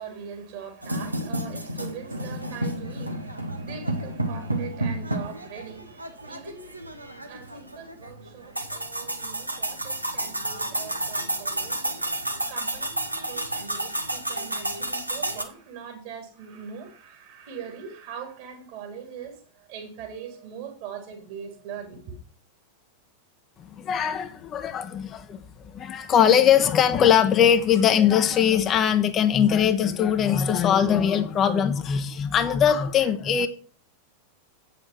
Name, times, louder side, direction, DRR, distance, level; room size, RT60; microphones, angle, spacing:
voice 1, 0.0-22.2, right 7 dB, 50° right, 3.3 m, -41 dB
sound 1, 0.8-15.4, right 1 dB, 85° right, 1.1 m, -31 dB
voice 2, 23.8-25.4 25.7-33.5, left 8 dB, 30° left, 0.8 m, -21 dB
8.8 x 6.8 x 5.9 m
figure-of-eight pair, 90°, 0 cm